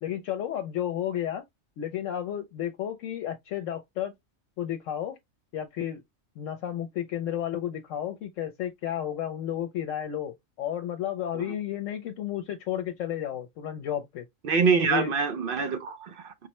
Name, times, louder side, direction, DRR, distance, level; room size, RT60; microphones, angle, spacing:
voice 1, 0.0-1.4 1.8-4.1 4.6-5.2 5.5-6.0 6.4-14.2 14.8-15.1, left 10 dB, 75° left, 0.9 m, -32 dB
voice 2, 14.4-16.5, right 5 dB, 65° right, 0.6 m, -26 dB
5.4 x 2.1 x 2.9 m
omnidirectional pair, 1.3 m